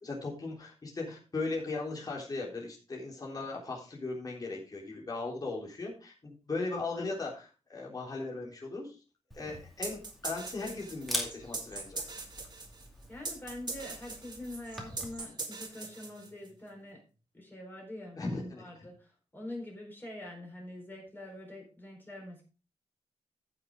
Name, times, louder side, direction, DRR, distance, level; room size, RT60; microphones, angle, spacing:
voice 1, 0.0-9.0 9.3-12.1 18.2-18.6, left 3 dB, 30° left, -2 dB, 3.4 m, -38 dB
Camera, 9.3-15.1, equal, ahead, 2.3 m, -43 dB
sound 1, 9.8-16.5, right 3 dB, 35° right, 2.0 m, -41 dB
voice 2, 13.1-17.0 17.3-22.4, left 1 dB, 15° left, -1 dB, 4.2 m, -44 dB
14.5 x 6.2 x 3.6 m, 0.34 s
wide cardioid pair, 140°, 12 cm